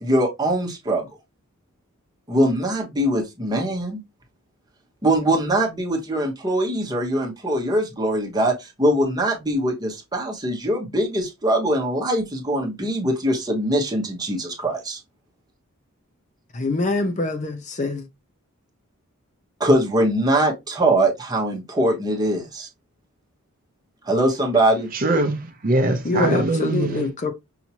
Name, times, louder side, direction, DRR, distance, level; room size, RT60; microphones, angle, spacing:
voice 1, 0.0-1.1 2.3-4.0 5.0-15.0 19.6-22.7 24.1-24.9, right 1 dB, 20° right, 1.1 m, -22 dB
voice 2, 16.5-18.1 26.0-27.3, left 2 dB, 35° left, 0.6 m, -24 dB
voice 3, 24.9-27.1, right 2 dB, 40° right, 0.6 m, -22 dB
5.7 x 2.7 x 2.9 m
head